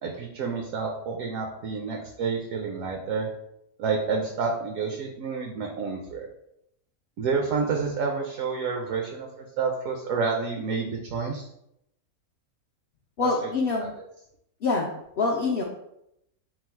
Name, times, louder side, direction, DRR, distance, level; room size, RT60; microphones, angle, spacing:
voice 1, 0.0-3.3 3.8-6.3 7.2-11.5 13.2-13.5, right 5 dB, 70° right, 2 dB, 0.9 m, -29 dB
voice 2, 13.2-13.9 14.6-14.9 15.2-15.6, left 3 dB, 70° left, -2 dB, 0.5 m, -25 dB
4.5 x 2.0 x 4.3 m, 0.79 s
omnidirectional pair, 1.6 m